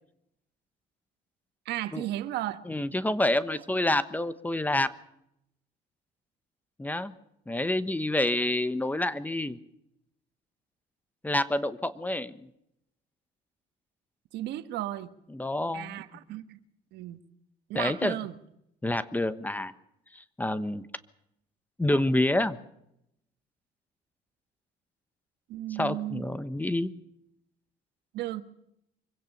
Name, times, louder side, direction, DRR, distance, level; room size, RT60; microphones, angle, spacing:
voice 1, 1.6-2.6 14.3-15.1 15.7-16.6 16.9-17.2 17.7-18.4 25.5-26.2 28.1-28.4, right 14 dB, 80° right, 1.4 m, -34 dB
voice 2, 2.7-4.9 6.8-7.1 7.5-9.6 11.2-12.5 15.3-15.9 17.7-18.2 18.8-19.7 20.1-20.9 21.8-22.6 25.8-26.9, left 1 dB, 10° left, 1.1 m, -28 dB
24.5 x 16.5 x 6.7 m
cardioid pair, 110°, 17 cm